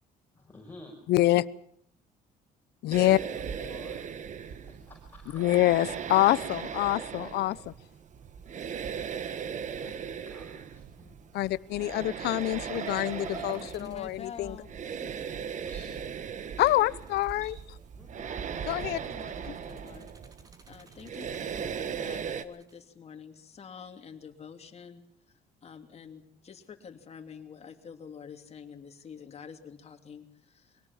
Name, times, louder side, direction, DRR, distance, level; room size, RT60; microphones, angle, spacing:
voice 1, 0.3-1.0 2.9-4.0 4.4-5.4 8.5-9.0 9.4-11.5 15.7-16.2 17.4-17.5 18.0-18.3 21.6-22.2, left 2 dB, 10° left, -2 dB, 5.8 m, -51 dB
voice 2, 1.1-1.4 2.8-3.2 5.3-7.7 11.3-14.6 16.6-17.5 18.7-19.0 19.5-19.6, left 16 dB, 75° left, 19 dB, 0.9 m, -26 dB
sound 1, 2.9-22.4, right 7 dB, 45° right, 1.4 m, -38 dB
sound 2, 12.4-15.2 16.4-18.0 18.5-22.8, right 3 dB, 20° right, 3.0 m, -49 dB
voice 3, 13.2-14.7 15.0-15.1 19.0-20.1 20.7-21.3 21.8-25.0 25.6-30.8, left 6 dB, 40° left, 6 dB, 2.9 m, -47 dB
23.5 x 18.0 x 7.4 m, 0.67 s
cardioid pair, 110°, 17 cm